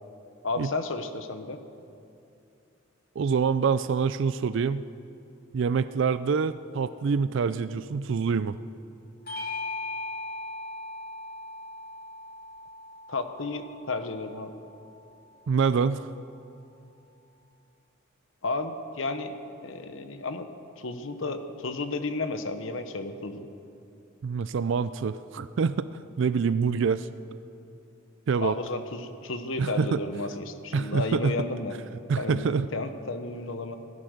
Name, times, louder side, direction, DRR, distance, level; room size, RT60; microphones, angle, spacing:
voice 1, 0.4-1.6 13.1-14.5 18.4-19.3 19.6-20.5 20.8-23.5 28.4-31.7 32.2-33.8, left 3 dB, 65° left, 9 dB, 1.0 m, -32 dB
voice 2, 3.2-4.8 5.5-8.6 15.5-16.1 24.2-25.9 26.2-27.1 28.3-28.6 29.6-30.0 30.7-31.3 32.1-32.7, right 5 dB, 60° right, 13 dB, 0.4 m, -26 dB
Bell / Doorbell, 9.3-14.1, left 2 dB, 50° left, 2.8 m, -38 dB
16.0 x 13.0 x 6.6 m, 2.6 s
head